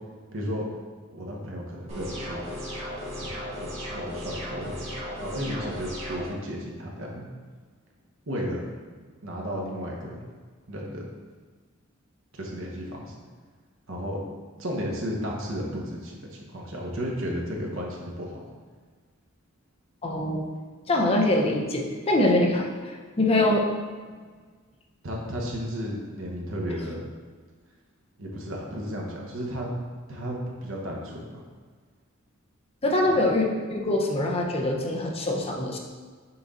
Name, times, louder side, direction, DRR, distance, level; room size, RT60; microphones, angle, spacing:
voice 1, 0.3-0.6 1.1-2.4 3.2-3.3 3.6-4.9 5.2-7.3 8.3-8.6 8.9-10.2 10.7-11.1 12.3-13.1 13.9-14.2 14.6-18.4 25.0-27.0 28.2-29.7 30.1-30.4 30.6-31.4, equal, 70° right, -1 dB, 1.2 m, -33 dB
sound 1, 1.9-6.3, equal, 30° right, 1.6 m, -35 dB
voice 2, 20.0-20.4 20.9-23.7 32.8-35.8, left 1 dB, 30° left, 0 dB, 0.6 m, -24 dB
6.0 x 4.2 x 3.7 m, 1.5 s
head